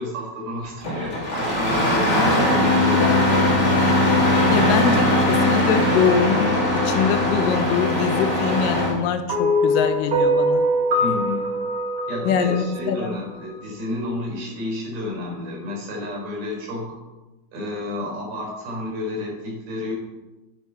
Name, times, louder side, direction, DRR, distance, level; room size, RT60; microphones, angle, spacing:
voice 1, 0.0-3.8 11.0-11.5 12.1-17.0 17.5-19.9, left 2 dB, 75° right, -2 dB, 6.5 m, -31 dB
Engine starting, 0.8-8.9, left 1 dB, 25° left, 2.1 m, -20 dB
voice 2, 4.5-10.7 12.3-13.2, left 6 dB, 75° left, 8 dB, 2.2 m, -23 dB
sound 1, 9.3-13.6, equal, 55° right, 1.0 m, -22 dB
10.0 x 9.7 x 4.6 m, 1.1 s
omnidirectional pair, 4.3 m